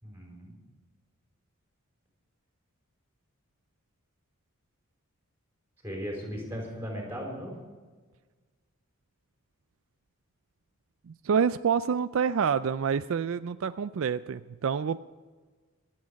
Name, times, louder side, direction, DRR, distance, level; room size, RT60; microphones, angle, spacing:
voice 1, 0.0-0.5 5.8-7.6, equal, 10° right, -1 dB, 4.5 m, -37 dB
voice 2, 11.1-15.0, right 6 dB, 70° right, 13 dB, 0.4 m, -27 dB
25.0 x 8.6 x 5.2 m, 1.4 s
head